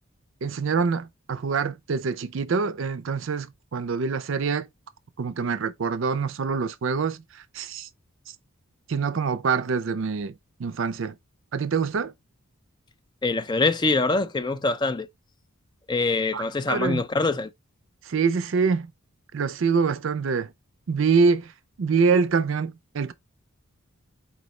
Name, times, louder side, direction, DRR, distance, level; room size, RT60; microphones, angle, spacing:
voice 1, 0.4-4.7 5.2-7.9 8.9-10.3 10.6-11.2 11.5-12.1 16.3-17.0 18.1-18.9 19.3-20.5 20.9-21.5 21.8-23.1, right 5 dB, 60° right, 0.4 m, -25 dB
voice 2, 13.2-15.1 15.9-17.5, left 3 dB, 20° left, 0.3 m, -24 dB
4.3 x 4.0 x 3.1 m
head